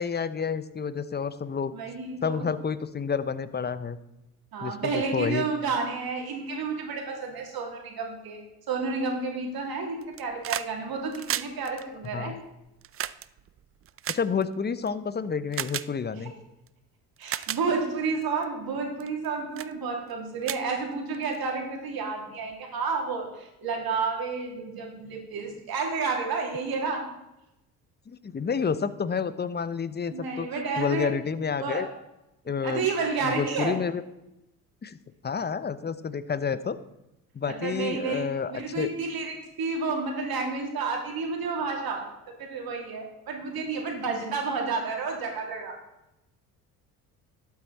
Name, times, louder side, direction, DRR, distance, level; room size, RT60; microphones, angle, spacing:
voice 1, 0.0-1.7 2.2-4.0 4.6-5.5 12.1-12.4 14.1-16.3 28.1-30.5 30.8-31.9 32.5-32.9 33.2-34.0 34.8-35.0 35.2-36.8 37.3-38.9, left 6 dB, 20° left, 15 dB, 0.8 m, -29 dB
voice 2, 1.7-2.5 4.5-8.4 8.7-12.3 17.2-27.0 30.1-31.2 31.6-31.8 32.5-33.8 37.5-42.1 42.4-45.8, right 4 dB, 55° right, 1 dB, 3.1 m, -31 dB
sound 1, 10.0-10.7 11.0-14.9 15.5-15.9 16.7-16.8 17.2-17.6 18.2-18.4 19.0-19.3 19.6-19.7 20.1-20.2 20.4-21.4 22.5-22.6, right 11 dB, 30° right, 0.5 m, -34 dB
12.0 x 8.6 x 4.2 m, 0.90 s
hypercardioid pair, 60°, 45 cm